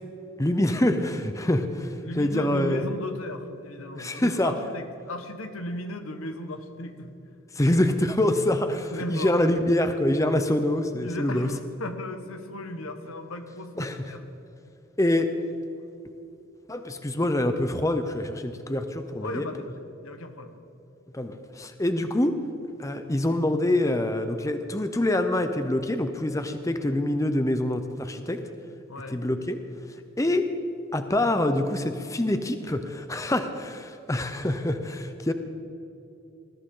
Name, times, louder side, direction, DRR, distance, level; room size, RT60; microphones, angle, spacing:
voice 1, 0.4-2.8 3.9-4.5 7.5-11.5 13.8-14.1 15.0-15.3 16.7-19.5 21.1-22.4 22.8-28.4 29.1-29.6 30.2-30.5 30.9-35.3, left 1 dB, 15° left, 8 dB, 0.6 m, -25 dB
voice 2, 2.0-7.1 8.9-9.4 11.0-14.2 19.2-19.7 20.0-20.6 28.9-29.2, left 1 dB, 90° left, 7 dB, 1.4 m, -36 dB
20.5 x 14.0 x 3.8 m, 2.9 s
head